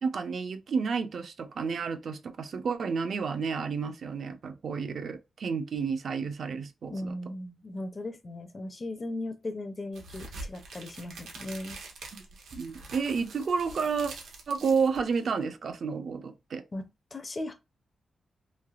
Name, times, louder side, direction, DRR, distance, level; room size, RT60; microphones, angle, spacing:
voice 1, 0.0-7.1 12.5-14.1 14.5-16.6, right 5 dB, 50° right, 0.4 m, -31 dB
voice 2, 6.9-11.8 16.7-16.8 17.1-17.5, left 1 dB, 25° left, 0.4 m, -37 dB
sound 1, 9.9-15.4, right 3 dB, 85° right, 0.9 m, -45 dB
3.2 x 2.7 x 2.3 m
wide cardioid pair, 175°, 0 cm